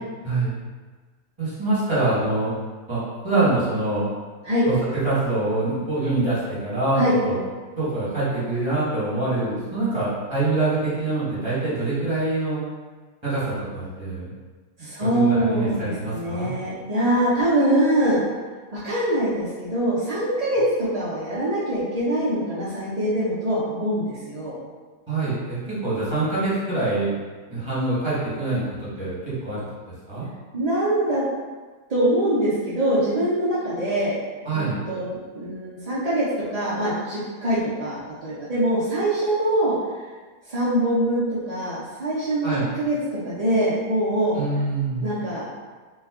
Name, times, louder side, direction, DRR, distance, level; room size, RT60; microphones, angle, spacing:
voice 1, 1.4-2.5 2.9-4.1 4.6-4.8 5.0-7.4 7.8-12.6 13.2-14.3 15.0-16.5 25.1-27.2 27.5-29.6 30.1-30.3 34.4-34.8 42.4-42.7 44.3-45.1, right 2 dB, 20° right, -10 dB, 1.2 m, -25 dB
voice 2, 14.8-18.2 18.7-24.6 30.5-31.2 31.9-34.1 34.5-35.1 35.3-39.7 40.5-44.3 45.0-45.4, right 1 dB, 65° right, -8 dB, 0.4 m, -23 dB
3.2 x 2.2 x 3.6 m, 1.4 s
omnidirectional pair, 1.7 m